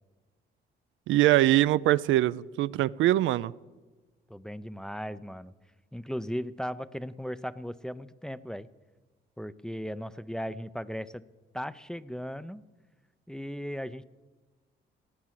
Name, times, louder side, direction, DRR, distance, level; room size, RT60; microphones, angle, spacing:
voice 1, 1.1-3.5, right 15 dB, 80° right, 17 dB, 0.4 m, -23 dB
voice 2, 4.3-5.5 5.9-8.7 9.4-11.2 11.5-12.6 13.3-14.0, equal, 5° left, 14 dB, 0.5 m, -37 dB
16.5 x 9.8 x 7.5 m, 1.2 s
cardioid pair, 90°, 20 cm